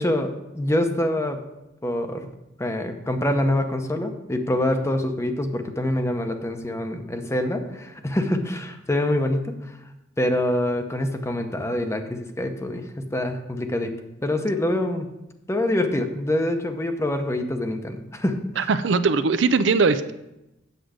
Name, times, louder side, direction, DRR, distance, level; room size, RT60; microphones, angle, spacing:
voice 1, 0.0-1.4 1.8-2.3 2.6-9.5 10.2-13.9 14.2-15.1 15.5-18.7, left 1 dB, 15° left, 6 dB, 0.8 m, -25 dB
voice 2, 18.6-20.1, right 4 dB, 70° right, 12 dB, 0.5 m, -20 dB
8.2 x 7.7 x 5.0 m, 0.94 s
head